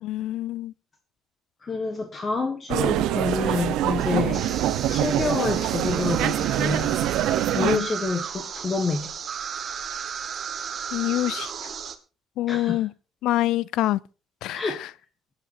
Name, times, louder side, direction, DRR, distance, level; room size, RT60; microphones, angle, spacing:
voice 1, 0.0-0.7 4.1-4.2 7.6-7.9 10.9-11.7 12.4-12.9 13.2-14.0 14.4-14.9, left 15 dB, 90° left, 0.5 m, -26 dB
voice 2, 1.6-4.4 4.9-7.0 7.5-9.1 12.5-12.8 14.5-14.8, left 4 dB, 25° left, 1.6 m, -28 dB
sound 1, 2.7-7.8, right 13 dB, 90° right, 0.8 m, -24 dB
sound 2, 4.3-12.0, right 7 dB, 40° right, 1.4 m, -34 dB
24.5 x 8.9 x 2.7 m
cardioid pair, 145°, 0 cm